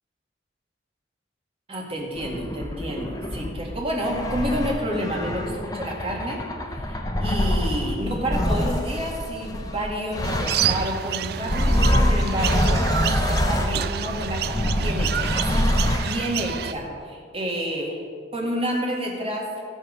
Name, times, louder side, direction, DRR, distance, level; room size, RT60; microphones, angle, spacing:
voice 1, 1.7-6.4 6.7-11.8 12.1-12.9 13.3-15.7 15.9-18.0 18.3-19.5, equal, 30° right, -1 dB, 1.9 m, -29 dB
sound 1, 2.2-11.0 11.4-16.3, left 1 dB, 20° left, 0.8 m, -25 dB
sound 2, 10.2-16.7, right 9 dB, 55° right, 0.3 m, -29 dB
16.5 x 6.3 x 5.0 m, 2.2 s
head